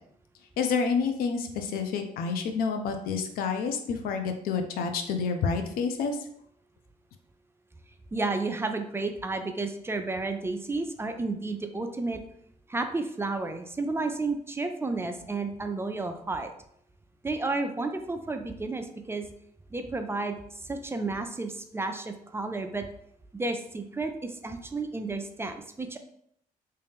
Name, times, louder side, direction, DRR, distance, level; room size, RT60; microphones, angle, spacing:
voice 1, 0.6-6.2, left 5 dB, 85° left, 6 dB, 0.5 m, -29 dB
voice 2, 8.1-12.2 12.7-16.5 17.2-19.3 19.7-20.4 20.6-22.9 23.3-26.0, right 3 dB, 15° right, 6 dB, 0.4 m, -32 dB
3.3 x 2.9 x 3.5 m, 0.71 s
cardioid pair, 85°, 15 cm